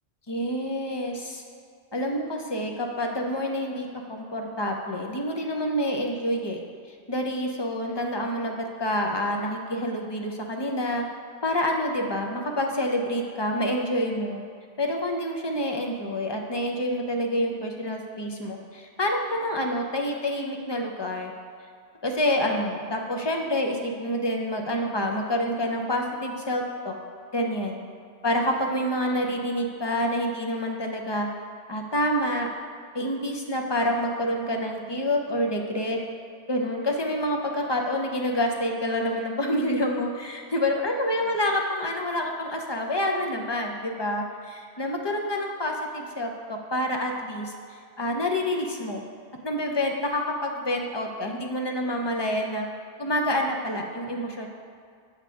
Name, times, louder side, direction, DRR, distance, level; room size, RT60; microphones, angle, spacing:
voice 1, 0.3-1.4 1.9-6.6 7.1-8.5 8.8-11.0 11.4-14.4 14.8-21.3 22.0-26.9 27.3-27.8 28.2-31.3 31.7-32.5 32.9-36.0 36.5-49.0 49.4-52.6 53.0-54.5, left 1 dB, 35° left, 2 dB, 0.4 m, -27 dB
7.3 x 3.4 x 6.2 m, 2.3 s
omnidirectional pair, 1.2 m